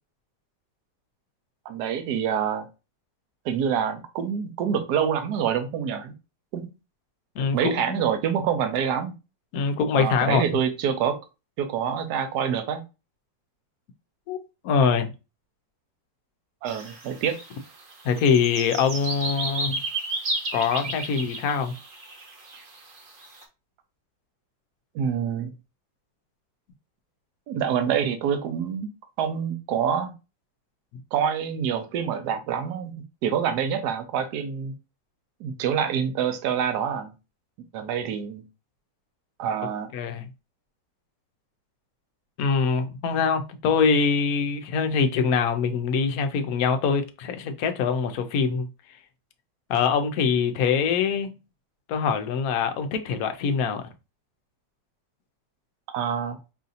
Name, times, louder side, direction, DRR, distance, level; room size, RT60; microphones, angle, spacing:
voice 1, 1.6-2.7 3.4-6.1 6.5-6.7 7.5-9.1 9.9-11.2 11.6-12.8 16.6-17.4 24.9-25.5 27.5-28.9 29.2-30.1 31.1-32.9 33.2-34.7 35.4-37.1 37.7-38.4 39.4-39.9 55.9-56.4, right 8 dB, 70° right, 1.2 m, -26 dB
voice 2, 7.4-8.0 9.5-10.6 14.3-15.1 18.0-19.8 20.5-21.7 39.9-40.3 42.4-48.7 49.7-51.3 51.9-53.8, left 5 dB, 65° left, 0.9 m, -24 dB
sound 1, 16.7-23.4, right 2 dB, 45° right, 0.7 m, -33 dB
5.5 x 2.7 x 2.5 m
omnidirectional pair, 2.0 m